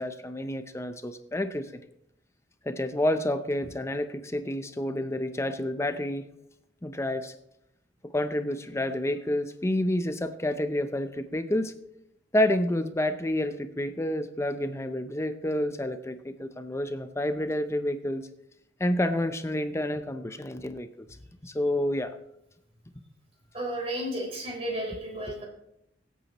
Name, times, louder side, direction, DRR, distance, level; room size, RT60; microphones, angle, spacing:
voice 1, 0.0-1.8 2.6-6.3 6.8-7.3 8.0-11.7 12.3-18.3 18.8-20.9 21.4-22.1, left 1 dB, 15° left, 9 dB, 0.6 m, -29 dB
voice 2, 23.5-25.4, right 1 dB, 35° right, 0 dB, 3.8 m, -33 dB
22.5 x 8.3 x 3.0 m, 0.80 s
head